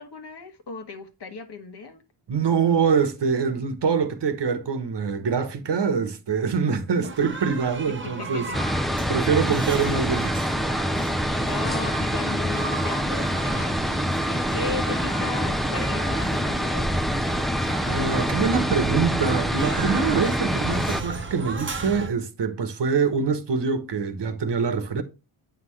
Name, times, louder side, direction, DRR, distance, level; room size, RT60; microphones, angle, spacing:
voice 1, 0.0-2.0 7.0-7.1 7.9-8.6 9.3-9.6 11.5-16.9, left 4 dB, 55° left, 1.4 m, -36 dB
voice 2, 2.3-8.5 9.1-10.6 17.9-25.0, right 5 dB, 55° right, 1.2 m, -24 dB
sound 1, 7.0-22.1, right 4 dB, 25° right, 1.0 m, -36 dB
sound 2, 8.5-21.0, equal, ahead, 0.4 m, -25 dB
9.1 x 5.7 x 3.1 m
wide cardioid pair, 135°, 49 cm